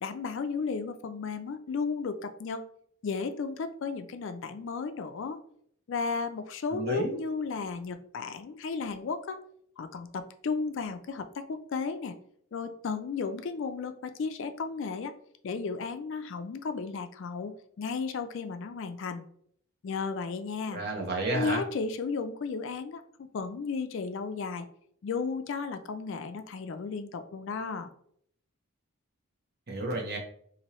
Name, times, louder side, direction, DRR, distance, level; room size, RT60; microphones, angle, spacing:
voice 1, 0.0-2.6 3.0-5.4 5.9-9.4 9.8-12.1 12.5-15.1 15.4-19.3 19.8-20.8 21.3-24.7 25.0-27.9, left 4 dB, 55° left, 9 dB, 0.3 m, -34 dB
voice 2, 6.7-7.2 20.7-21.6 29.7-30.2, right 2 dB, 45° right, 0 dB, 0.9 m, -31 dB
4.3 x 2.6 x 3.0 m, 0.65 s
head